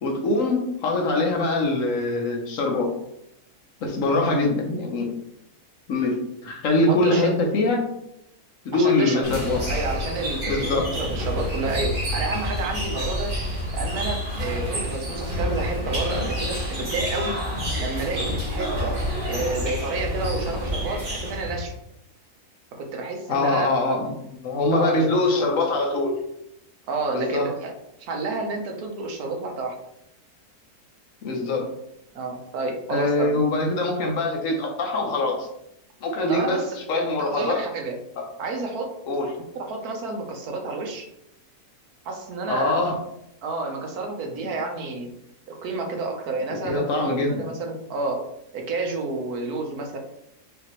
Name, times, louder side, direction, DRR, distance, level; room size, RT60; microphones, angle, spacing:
voice 1, 0.0-2.9 3.8-5.1 5.9-7.9 8.6-9.6 10.4-10.9 23.3-24.1 24.4-26.2 27.1-27.5 31.2-31.7 32.9-35.5 36.0-37.7 38.2-38.3 39.1-39.3 42.5-43.0 46.5-47.5, left 2 dB, 65° left, 1 dB, 1.1 m, -23 dB
voice 2, 6.9-7.3 8.7-9.3 9.7-13.3 13.7-17.3 17.8-18.9 19.3-21.7 22.8-23.7 24.7-25.5 26.9-27.7 28.0-29.8 32.1-33.4 36.3-36.7 37.2-37.9 38.4-38.9 39.5-41.1 42.0-42.8 43.4-45.1 45.6-48.2 48.5-50.0, right 3 dB, 75° right, 2 dB, 1.3 m, -30 dB
sound 1, 9.2-21.7, equal, 35° right, 1.3 m, -28 dB
5.1 x 2.8 x 3.0 m, 0.80 s
omnidirectional pair, 1.6 m